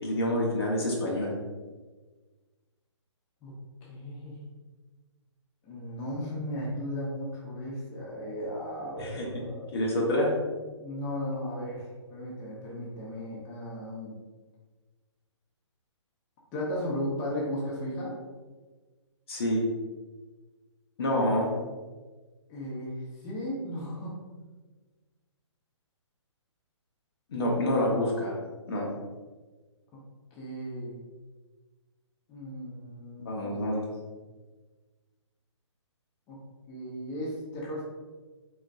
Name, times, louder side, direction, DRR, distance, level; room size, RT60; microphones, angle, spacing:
voice 1, 0.0-1.3 9.0-9.4 9.7-10.3 19.3-19.6 21.0-21.5 27.3-28.4 28.7-28.9 33.2-33.9, left 1 dB, 55° left, -3 dB, 1.1 m, -27 dB
voice 2, 3.9-4.4 5.6-9.6 10.8-11.8 12.1-14.1 16.5-18.1 22.5-23.0 23.2-24.2 29.9-30.0 30.3-30.9 32.3-33.9 36.3-36.4 36.7-37.8, equal, 25° left, -5 dB, 1.1 m, -35 dB
4.2 x 4.1 x 2.6 m, 1.3 s
figure-of-eight pair, 135°, 16 cm